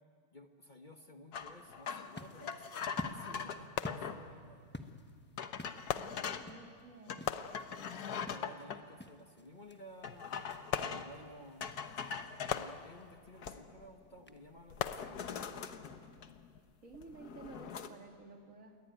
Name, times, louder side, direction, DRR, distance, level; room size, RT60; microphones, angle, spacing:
voice 1, 0.3-4.7 8.0-11.7 12.5-15.5, equal, 30° left, 5 dB, 1.0 m, -55 dB
sound 1, 1.3-4.2 4.8-4.9 5.4-6.5 7.1-8.8 10.0-11.2 11.6-12.7 13.2-13.9 14.2-14.4 14.7-16.6 16.9-17.9, left 6 dB, 50° left, 1.4 m, -42 dB
sound 2, 1.8-15.3, left 1 dB, 10° left, 0.5 m, -52 dB
sound 3, 2.2-2.4 3.8-4.6 5.9-6.8 7.3-8.2 10.7-11.6 12.5-13.5 14.8-15.7 16.3-16.4, left 10 dB, 80° left, 1.8 m, -41 dB
voice 2, 6.2-7.3 16.8-18.8, right 3 dB, 35° right, 3 dB, 3.0 m, -53 dB
28.5 x 22.5 x 9.2 m, 2.1 s
omnidirectional pair, 2.4 m